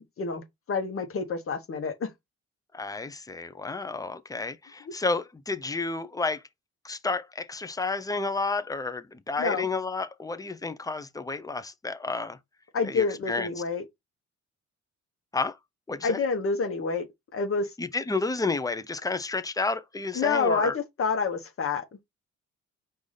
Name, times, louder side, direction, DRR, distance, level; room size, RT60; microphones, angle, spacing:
voice 1, 0.2-2.1 9.4-9.6 12.7-13.8 16.0-17.1 17.3-17.7 20.1-21.8, left 4 dB, 45° left, 1.0 m, -28 dB
voice 2, 2.7-6.4 6.8-12.4 12.8-13.5 15.3-15.6 15.9-16.2 17.8-20.8, left 3 dB, 10° left, 0.6 m, -31 dB
4.8 x 2.6 x 3.9 m
cardioid pair, 90°, 30 cm